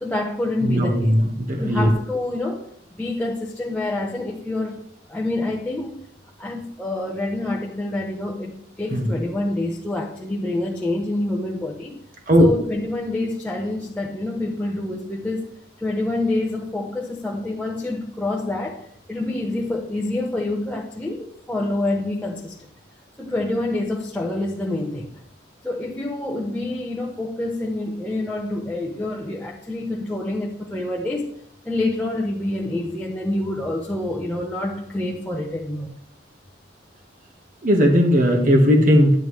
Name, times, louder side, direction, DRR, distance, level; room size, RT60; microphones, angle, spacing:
voice 1, 0.0-1.1 1.6-4.8 5.1-6.1 6.4-12.0 12.4-15.5 15.8-22.7 23.2-25.2 25.6-31.4 31.6-35.9, left 2 dB, 5° left, 0.9 m, -27 dB
voice 2, 0.6-1.9 8.9-9.1 12.3-12.5 37.6-39.1, equal, 45° right, 1.4 m, -17 dB
10.5 x 9.9 x 3.2 m
head